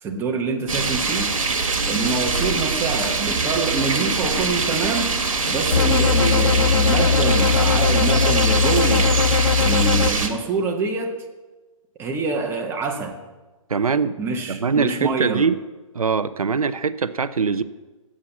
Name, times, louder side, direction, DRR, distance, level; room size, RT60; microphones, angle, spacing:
voice 1, 0.0-1.3 1.8-5.1 5.5-9.1 9.6-11.1 12.0-13.1 14.2-15.4, right 4 dB, 15° right, 2 dB, 1.0 m, -25 dB
sound 1, 0.7-10.3, right 4 dB, 70° right, 1.3 m, -23 dB
sound 2, 5.7-10.1, left 5 dB, 75° left, 0.4 m, -19 dB
voice 2, 13.7-14.2 14.5-15.6 15.9-17.6, right 5 dB, 85° right, 14 dB, 0.5 m, -22 dB
7.4 x 7.4 x 7.2 m, 1.2 s
figure-of-eight pair, 130°, 18 cm